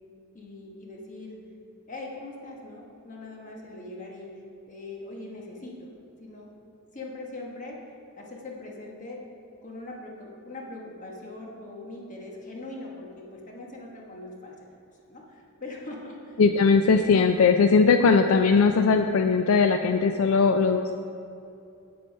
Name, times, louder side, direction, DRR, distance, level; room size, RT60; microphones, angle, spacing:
voice 1, 0.3-1.4 1.9-5.9 6.2-6.5 6.9-7.8 8.2-9.2 9.6-14.7 15.1-16.4, left 2 dB, 35° left, -2 dB, 1.4 m, -41 dB
voice 2, 16.4-20.9, left 5 dB, 70° left, 6 dB, 0.4 m, -20 dB
8.4 x 7.8 x 5.4 m, 2.7 s
head